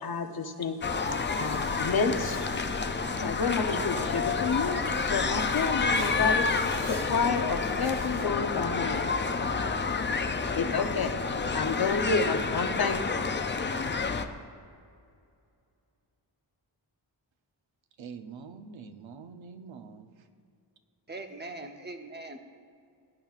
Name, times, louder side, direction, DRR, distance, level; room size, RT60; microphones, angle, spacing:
voice 1, 0.0-0.8 1.4-2.4 3.1-9.1 10.5-11.2 11.5-13.2, left 5 dB, 50° left, 5 dB, 0.8 m, -30 dB
sound 1, 0.8-14.3, left 4 dB, 25° left, 0.4 m, -29 dB
sound 2, 0.9-8.3, right 1 dB, 45° right, 2.3 m, -44 dB
voice 2, 18.0-20.1, right 5 dB, 80° right, 7 dB, 0.8 m, -45 dB
voice 3, 21.1-22.4, right 2 dB, 25° right, 5 dB, 0.7 m, -41 dB
18.0 x 10.5 x 2.4 m, 2.4 s
wide cardioid pair, 150°, 46 cm